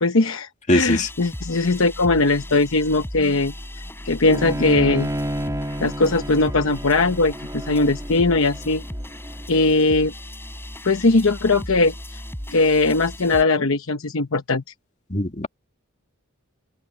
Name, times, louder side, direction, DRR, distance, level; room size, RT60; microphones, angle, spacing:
voice 1, 0.0-3.5 4.0-5.1 5.8-8.8 9.5-10.1 10.8-11.9 12.5-14.6, left 3 dB, 65° left, 1.0 m, -20 dB
voice 2, 0.7-1.1 15.1-15.5, left 1 dB, 35° left, 2.6 m, -21 dB
sound 1, 0.7-13.4, equal, 10° left, 4.7 m, -36 dB
Bowed string instrument, 4.3-9.6, equal, 15° right, 2.6 m, -31 dB
head